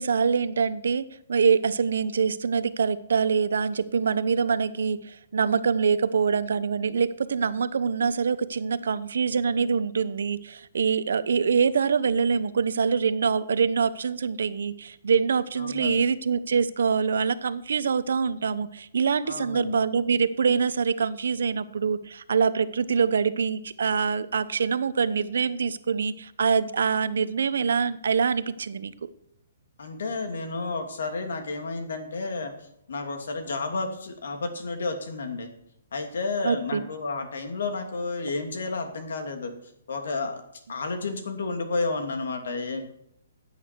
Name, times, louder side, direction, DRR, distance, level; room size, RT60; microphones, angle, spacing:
voice 1, 0.0-28.9 36.4-36.8, right 6 dB, 80° right, 14 dB, 0.9 m, -25 dB
voice 2, 15.6-16.0 19.2-19.8 29.8-32.5 32.9-35.5 35.9-39.5 39.9-40.4 40.7-42.8, left 3 dB, 75° left, 5 dB, 2.6 m, -31 dB
15.5 x 8.5 x 4.6 m, 0.74 s
hypercardioid pair, 170°, 0 cm